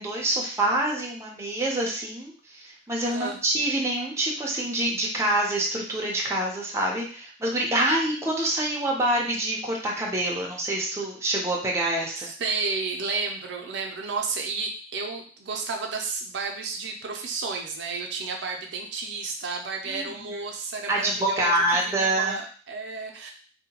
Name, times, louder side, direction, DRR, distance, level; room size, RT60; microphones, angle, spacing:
voice 1, 0.0-12.3 19.9-20.4 20.9-22.4, right 1 dB, 15° right, -2 dB, 0.5 m, -26 dB
voice 2, 3.1-3.4 12.2-21.5 21.8-23.3, right 4 dB, 70° right, 2 dB, 0.5 m, -32 dB
2.7 x 2.1 x 2.8 m, 0.42 s
head